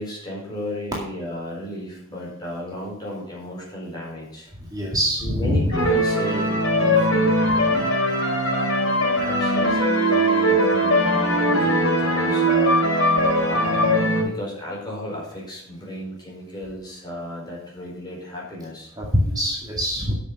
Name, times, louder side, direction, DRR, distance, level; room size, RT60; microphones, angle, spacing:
voice 1, 0.0-4.5 5.2-7.8 9.2-12.8 13.4-18.9, left 1 dB, 20° left, -3 dB, 4.4 m, -34 dB
voice 2, 4.7-5.7 19.0-20.1, equal, 20° right, -3 dB, 2.1 m, -23 dB
sound 1, 5.7-14.2, equal, 65° left, 4.0 m, -20 dB
10.0 x 6.9 x 5.5 m, 0.77 s
head